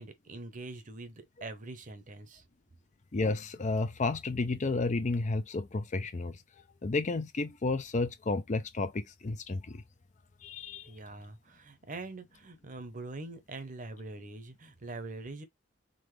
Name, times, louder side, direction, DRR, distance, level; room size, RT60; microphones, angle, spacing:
voice 1, 0.0-2.4 10.9-15.4, right 2 dB, 45° right, 0.9 m, -43 dB
voice 2, 3.1-6.3 6.8-9.8 10.4-10.9, left 3 dB, 40° left, 0.5 m, -32 dB
3.9 x 3.6 x 3.2 m
head